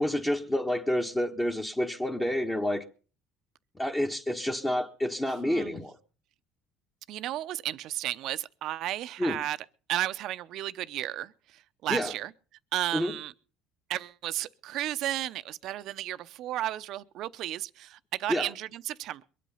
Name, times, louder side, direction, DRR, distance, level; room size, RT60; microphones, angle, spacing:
voice 1, 0.0-2.8 3.8-5.9 9.2-9.4 11.9-12.1 12.9-13.1 18.3-18.5, left 1 dB, 15° left, 1.4 m, -29 dB
voice 2, 5.4-5.8 7.1-9.6 9.9-11.3 11.8-12.3 12.7-13.3 13.9-19.2, right 13 dB, 65° right, 0.7 m, -33 dB
22.5 x 8.5 x 5.6 m
supercardioid pair, 85°, 0 cm